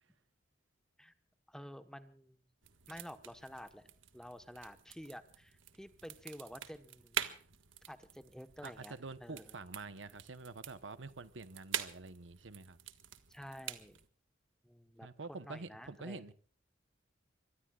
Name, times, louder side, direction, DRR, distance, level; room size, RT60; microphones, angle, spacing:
voice 1, 1.5-2.4 2.9-7.2 7.9-9.6 13.3-14.0 14.6-16.3, equal, 5° left, 1.2 m, -51 dB
sound 1, 2.6-14.1, right 9 dB, 85° right, 1.6 m, -46 dB
voice 2, 8.6-12.8 15.0-16.3, right 3 dB, 70° right, 1.0 m, -47 dB
25.5 x 23.0 x 2.4 m
head